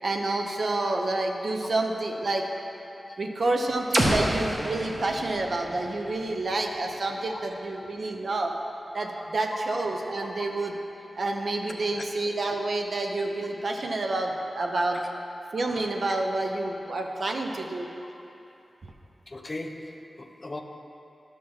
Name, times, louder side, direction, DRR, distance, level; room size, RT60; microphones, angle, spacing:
voice 1, 0.0-2.5 3.2-8.5 8.9-10.7 11.1-15.0 15.5-17.9, right 2 dB, 55° right, 3 dB, 0.7 m, -28 dB
sound 1, 3.9-7.8, right 1 dB, 35° right, 1.1 m, -30 dB
voice 2, 9.1-9.9 10.2-10.3 11.9-12.0 14.7-15.1 15.6-15.9 18.0-18.3 19.3-20.6, left 2 dB, 30° left, 4 dB, 0.5 m, -40 dB
11.5 x 7.1 x 3.2 m, 2.8 s
wide cardioid pair, 140°, 0 cm